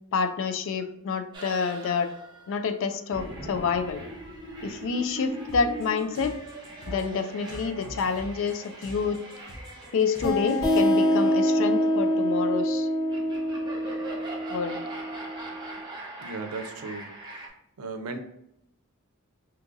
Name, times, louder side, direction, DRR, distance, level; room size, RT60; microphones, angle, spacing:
voice 1, 0.1-2.1 2.5-4.0 4.6-6.4 6.9-9.2 9.9-12.9 14.5-14.8, left 5 dB, 60° left, 9 dB, 0.3 m, -28 dB
sound 1, 1.3-17.5, right 2 dB, 20° right, 0.7 m, -42 dB
sound 2, 5.5-10.8, equal, 15° left, 0.9 m, -43 dB
sound 3, 10.2-15.6, equal, 80° left, 1.1 m, -25 dB
voice 2, 16.2-17.1 17.8-18.2, right 3 dB, 80° right, 7 dB, 0.5 m, -35 dB
2.8 x 2.5 x 3.7 m, 0.78 s
head